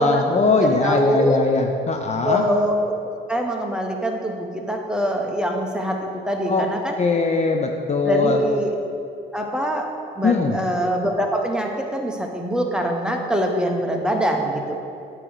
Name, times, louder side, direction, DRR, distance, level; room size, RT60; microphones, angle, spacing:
voice 1, 0.0-2.4 6.5-6.6 7.0-8.4 10.2-10.5, left 4 dB, 35° left, 3 dB, 0.5 m, -20 dB
voice 2, 0.6-1.4 2.2-3.0 3.3-6.0 6.3-7.0 8.0-8.7 9.3-9.9 10.1-14.8, right 1 dB, 5° right, 1 dB, 0.9 m, -23 dB
8.8 x 3.0 x 6.5 m, 2.6 s
cardioid pair, 90°, 20 cm